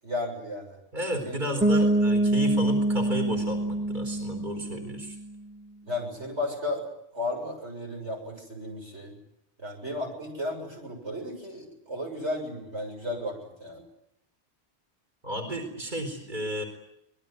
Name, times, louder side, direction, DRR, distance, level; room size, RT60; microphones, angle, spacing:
voice 1, 0.0-0.8 1.2-1.4 1.8-1.9 5.8-6.9 7.1-9.2 9.6-13.8, left 1 dB, 90° right, 1 dB, 7.7 m, -34 dB
voice 2, 0.9-5.2 15.2-16.6, equal, 45° right, 4 dB, 4.6 m, -33 dB
Bass guitar, 1.6-5.3, right 1 dB, 5° right, 1.3 m, -25 dB
25.5 x 21.0 x 9.6 m, 0.80 s
omnidirectional pair, 1.1 m